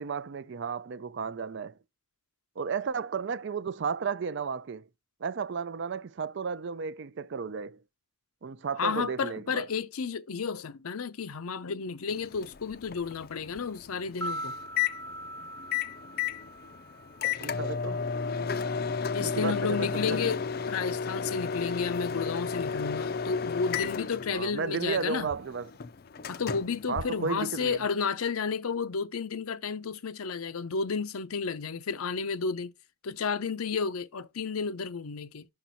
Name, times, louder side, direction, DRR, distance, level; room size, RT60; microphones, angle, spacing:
voice 1, 0.0-1.8 2.6-4.9 5.2-7.8 8.4-9.6 17.4-18.1 19.2-20.3 24.3-25.7 26.9-27.8, right 5 dB, 55° right, 0.4 m, -33 dB
voice 2, 8.8-14.6 19.1-25.3 26.3-32.7 33.0-35.5, left 5 dB, 90° left, 0.6 m, -32 dB
Microwave oven, 12.1-27.8, left 6 dB, 45° left, 0.4 m, -33 dB
sound 1, 14.0-18.2 18.5-18.6, right 1 dB, 5° left, 0.7 m, -41 dB
5.9 x 4.9 x 4.0 m
head